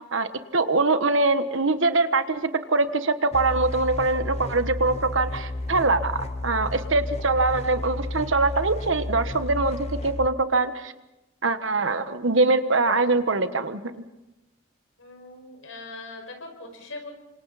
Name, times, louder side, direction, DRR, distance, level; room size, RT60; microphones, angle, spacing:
voice 1, 0.1-10.9 11.4-14.0, right 3 dB, 75° right, 10 dB, 1.3 m, -23 dB
sound 1, 3.3-10.3, left 2 dB, 30° left, 0.7 m, -32 dB
voice 2, 15.0-17.1, left 2 dB, 80° left, 3 dB, 5.7 m, -41 dB
28.5 x 25.5 x 4.2 m, 0.96 s
head